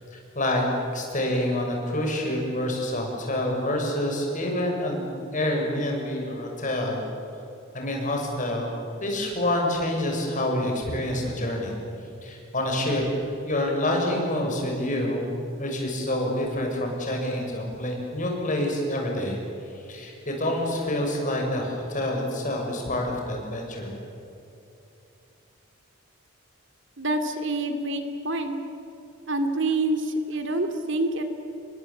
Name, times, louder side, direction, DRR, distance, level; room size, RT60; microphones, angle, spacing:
voice 1, 0.1-0.6 0.9-7.0 7.7-8.7 9.0-11.7 12.2-13.0 13.4-15.2 15.6-19.4 19.7-23.9, left 1 dB, 40° left, 1 dB, 6.7 m, -27 dB
voice 2, 27.0-28.6 29.3-31.2, right 2 dB, 65° right, 8 dB, 2.6 m, -27 dB
28.5 x 22.5 x 8.6 m, 2.8 s
head